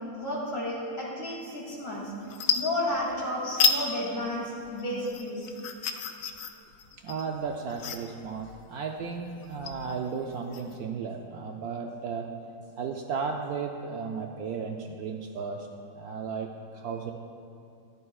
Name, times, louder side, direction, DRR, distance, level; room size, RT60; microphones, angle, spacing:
voice 1, 0.0-2.1 2.5-5.5, left 1 dB, 55° left, -6 dB, 3.0 m, -32 dB
sound 1, 1.7-2.0 2.2-3.2 3.6-3.8 4.2-10.8, left 6 dB, 70° left, 1.1 m, -31 dB
voice 2, 7.0-12.3 12.8-15.7 16.0-17.1, right 5 dB, 70° right, 2 dB, 0.9 m, -34 dB
14.5 x 11.0 x 2.3 m, 2.5 s
omnidirectional pair, 1.9 m